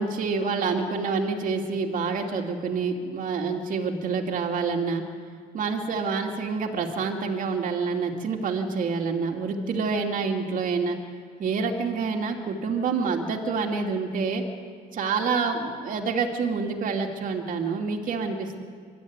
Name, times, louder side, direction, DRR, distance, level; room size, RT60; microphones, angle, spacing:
voice 1, 0.0-5.0 5.5-11.0 11.4-14.4 14.9-18.6, right 4 dB, 50° right, 2 dB, 2.5 m, -27 dB
23.5 x 12.5 x 9.4 m, 2.1 s
cardioid pair, 110°, 17 cm